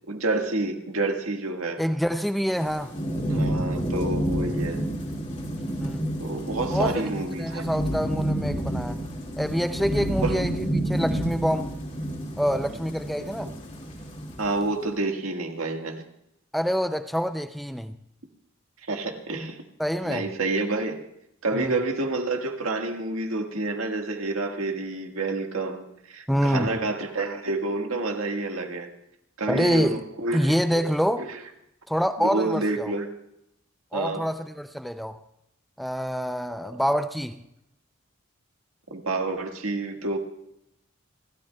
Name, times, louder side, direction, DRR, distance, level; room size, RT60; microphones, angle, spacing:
voice 1, 0.1-1.8 3.3-4.8 6.2-7.7 10.2-10.3 14.4-16.0 18.9-19.6 20.1-20.9 21.4-28.9 29.4-30.8 31.2-31.4 32.2-33.1 33.9-34.3 36.6-36.8 38.9-40.2, right 2 dB, 80° right, 1.7 m, -28 dB
voice 2, 1.8-2.9 5.8-6.1 6.7-7.1 7.4-9.0 9.4-11.8 12.4-13.5 16.5-18.0 19.8-20.3 21.5-21.8 26.3-26.8 29.5-30.0 30.3-31.3 31.9-32.9 33.9-35.2 35.8-37.4, equal, ahead, 0.4 m, -26 dB
Thunderstorm / Rain, 2.5-14.7, right 1 dB, 35° left, 2.7 m, -29 dB
29.0 x 13.0 x 2.3 m
head